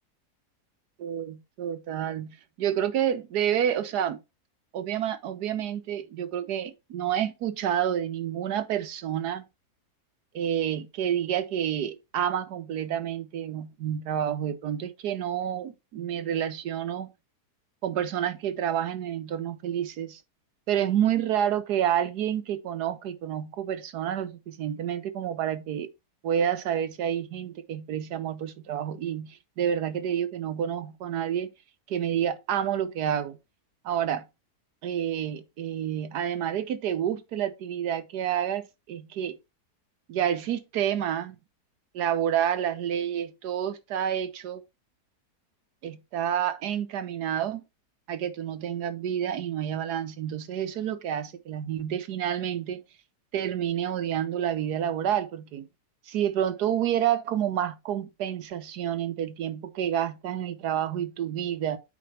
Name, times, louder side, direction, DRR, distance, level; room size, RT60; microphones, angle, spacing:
voice 1, 1.0-4.2 4.7-9.4 10.3-17.1 17.8-20.2 20.7-25.9 26.2-31.5 31.9-33.4 33.8-34.3 34.8-39.4 40.1-41.4 41.9-44.6 45.8-47.6 48.1-52.8 53.3-55.7 56.1-61.8, right 10 dB, 80° right, 1.4 m, -29 dB
8.6 x 4.9 x 3.2 m
omnidirectional pair, 1.8 m